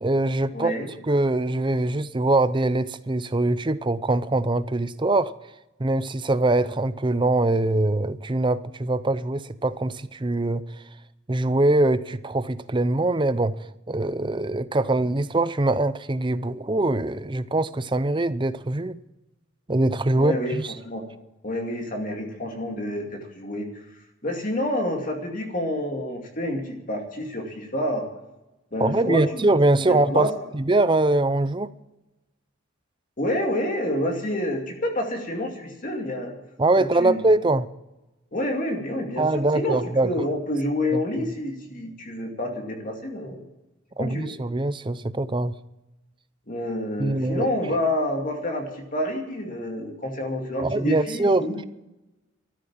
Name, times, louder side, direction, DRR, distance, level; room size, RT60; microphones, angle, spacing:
voice 1, 0.0-0.7 1.1-5.3 5.8-10.6 11.3-13.6 13.9-19.0 19.7-20.7 28.8-31.7 36.6-37.7 39.2-40.1 40.9-41.3 44.0-45.5 47.0-47.5 50.6-51.6, right 2 dB, 25° right, 14 dB, 0.6 m, -23 dB
voice 2, 0.5-0.9 20.2-21.1 21.4-23.7 24.2-28.1 28.7-29.5 29.9-30.3 33.2-36.4 36.8-37.3 38.3-43.4 44.0-44.3 46.5-51.6, left 1 dB, 40° left, 2 dB, 2.5 m, -28 dB
13.5 x 12.5 x 7.3 m, 0.98 s
head